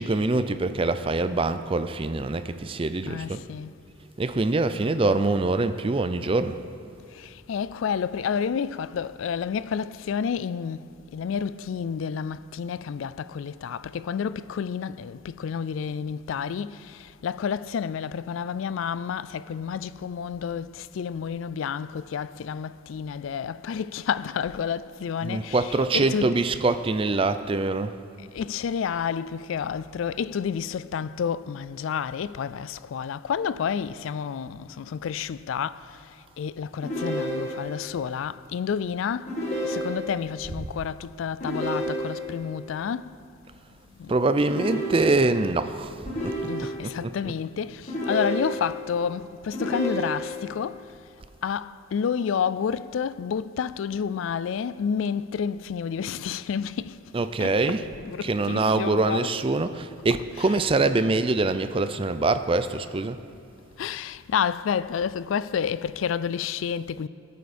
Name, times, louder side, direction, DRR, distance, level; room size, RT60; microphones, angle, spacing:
voice 1, 0.0-3.4 4.2-6.6 25.2-27.9 40.5-40.7 44.1-45.9 46.2-46.4 46.8-47.3 57.1-57.9 58.2-63.2, right 3 dB, 25° right, 0.4 m, -24 dB
voice 2, 3.0-3.8 7.1-26.7 28.3-43.6 43.9-44.2 46.4-51.1 51.4-59.3 60.1-60.7 63.8-67.1, left 7 dB, 70° left, 0.3 m, -30 dB
sound 1, 36.8-37.9 39.3-40.3 41.4-42.4 44.5-45.5 46.1-47.0 47.9-48.9 49.5-50.5, equal, 35° left, 2.2 m, -31 dB
20.0 x 8.3 x 4.3 m
head